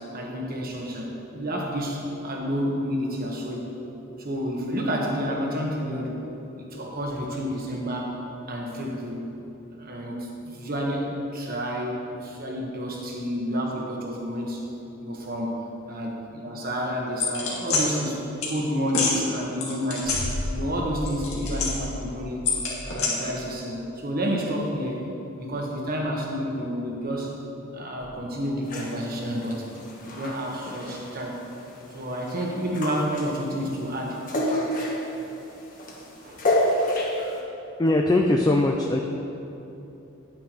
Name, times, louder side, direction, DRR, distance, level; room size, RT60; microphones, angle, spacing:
voice 1, 0.0-3.7 4.2-6.2 6.6-8.2 8.5-9.3 9.7-14.7 15.0-15.6 15.9-18.2 18.5-20.3 20.5-22.5 22.8-25.1 25.4-27.3 27.7-29.6 30.2-31.5 31.9-34.2 36.2-36.4, equal, 45° right, -1 dB, 1.2 m, -30 dB
sound 1, 17.2-17.8 18.4-18.5 18.9-19.1 19.6-20.7 21.0-22.0 22.5-23.1, left 4 dB, 85° left, 1.9 m, -26 dB
sound 2, 28.6-37.4, left 1 dB, 40° left, 1.2 m, -30 dB
voice 2, 37.8-39.0, left 2 dB, 20° left, 2 dB, 0.3 m, -21 dB
9.5 x 8.8 x 3.0 m, 2.9 s
head